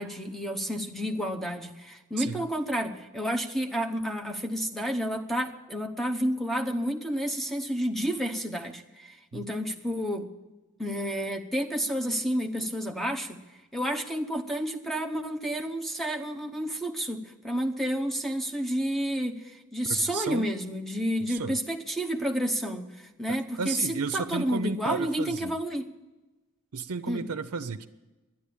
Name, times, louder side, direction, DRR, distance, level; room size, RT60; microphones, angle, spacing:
voice 1, 0.0-10.3 10.8-13.4 13.7-25.8 27.1-27.2, equal, ahead, 0.9 m, -30 dB
voice 2, 19.9-20.5 21.3-21.6 23.3-25.6 26.7-27.9, right 4 dB, 80° right, 0.6 m, -33 dB
11.5 x 10.0 x 8.6 m
head